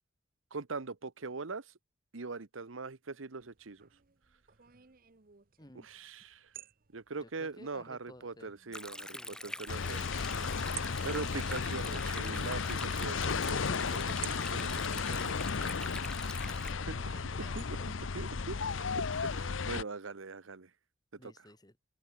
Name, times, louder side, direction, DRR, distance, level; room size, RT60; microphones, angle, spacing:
voice 1, 0.5-1.7 2.1-3.9 5.8-6.5 6.9-10.1 11.0-15.4 16.9-17.0 17.5-17.8 18.1-20.7 21.2-21.3, right 4 dB, 85° right, 1.0 m, -42 dB
sound 1, 3.4-18.0, right 14 dB, 45° right, 1.0 m, -54 dB
voice 2, 5.6-5.9 7.2-8.5 9.0-9.9 16.4-18.0 21.1-21.8, left 1 dB, 20° left, 2.3 m, -56 dB
Stream, 8.7-16.7, left 1 dB, 5° left, 1.8 m, -44 dB
sound 2, 9.7-19.8, left 5 dB, 80° left, 0.8 m, -34 dB
open air
head